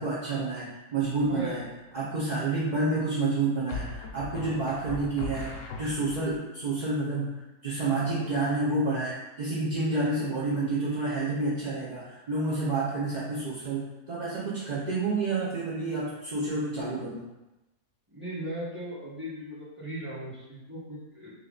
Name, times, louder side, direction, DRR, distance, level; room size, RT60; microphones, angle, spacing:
voice 1, 0.0-1.7 1.9-17.2, right 3 dB, 55° right, -7 dB, 0.5 m, -29 dB
sound 1, 1.0-1.5 3.7-6.4, left 3 dB, 65° left, 0.8 m, -38 dB
voice 2, 12.5-13.0 18.1-21.3, right 1 dB, 10° right, -9 dB, 1.3 m, -38 dB
3.4 x 3.0 x 3.8 m, 1.0 s
omnidirectional pair, 1.7 m